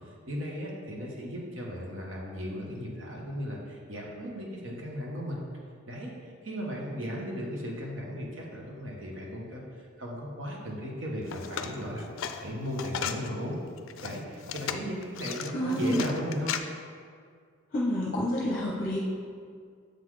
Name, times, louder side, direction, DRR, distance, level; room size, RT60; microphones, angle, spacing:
voice 1, 0.3-5.4 5.9-13.6 14.0-16.5, equal, 65° right, -2 dB, 1.2 m, -36 dB
sound 1, 11.2-13.3 13.8-16.6, left 8 dB, 70° left, 0.4 m, -35 dB
voice 2, 15.5-16.1 17.7-19.0, equal, 40° left, -3 dB, 0.7 m, -28 dB
6.7 x 4.0 x 4.8 m, 2.1 s
head